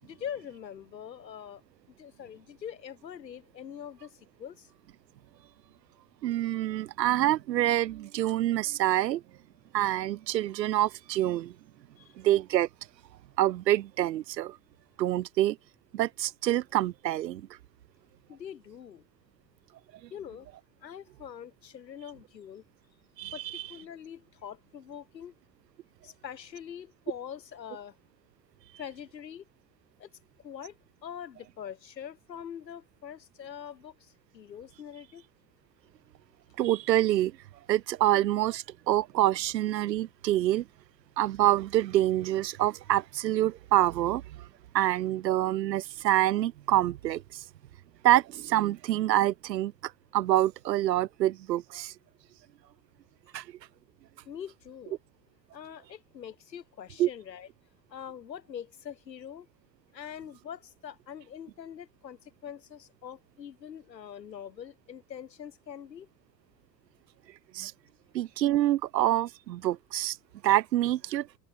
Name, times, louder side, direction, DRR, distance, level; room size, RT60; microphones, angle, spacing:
voice 1, 0.0-1.6 2.0-4.7 12.0-12.1 18.3-19.0 20.1-20.5 20.8-22.6 23.3-25.3 26.0-28.0 28.8-29.4 30.0-30.1 30.4-35.2 54.3-55.0 55.5-57.5 57.9-59.5 59.9-66.1, left 9 dB, 80° left, 5.9 m, -43 dB
voice 2, 6.2-9.2 9.7-11.5 12.2-12.7 13.4-14.6 15.0-15.6 15.9-17.5 23.2-23.6 36.6-37.3 37.7-40.6 41.2-44.2 44.7-47.4 48.0-49.7 50.1-51.9 53.3-53.4 57.0-57.1 67.5-67.7 68.1-70.2 70.4-71.3, right 13 dB, 80° right, 0.9 m, -26 dB
open air
figure-of-eight pair, 65°, 50 cm